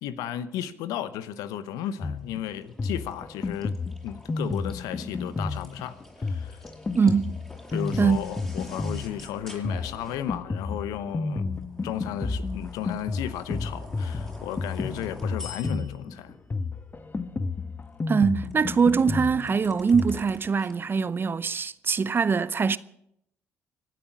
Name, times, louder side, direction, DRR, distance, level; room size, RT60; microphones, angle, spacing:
voice 1, 0.0-3.7 4.0-6.6 7.7-11.5 11.8-16.4, left 10 dB, 70° left, 0.9 m, -34 dB
Drum kit, 2.0-20.2, left 3 dB, 30° left, 1.1 m, -32 dB
sound 1, 2.2-10.5 11.4-16.2 17.8-20.7, left 1 dB, 10° left, 5.7 m, -48 dB
voice 2, 6.9-7.3 8.0-8.2 18.1-22.8, right 5 dB, 35° right, 0.7 m, -23 dB
25.5 x 9.2 x 6.2 m
hypercardioid pair, 50°, 6 cm